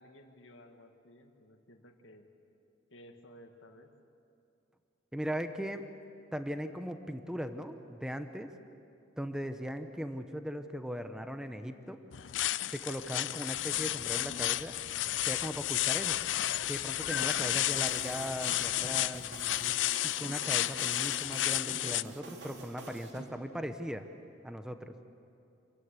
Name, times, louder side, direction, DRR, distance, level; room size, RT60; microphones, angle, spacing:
voice 1, 0.0-2.3 2.9-4.0, equal, 85° left, 4 dB, 2.0 m, -56 dB
voice 2, 5.1-5.9 6.3-8.5 9.2-12.0 12.7-14.7 15.2-16.2 16.7-19.2 20.0-24.1 24.4-24.9, equal, 5° right, 7 dB, 0.8 m, -38 dB
sound 1, 12.1-22.0, left 14 dB, 70° left, 0.4 m, -32 dB
sound 2, 13.5-19.8, left 1 dB, 30° left, 1.1 m, -53 dB
sound 3, 17.5-23.3, right 3 dB, 65° right, 2.8 m, -47 dB
27.5 x 15.0 x 8.3 m, 2.6 s
head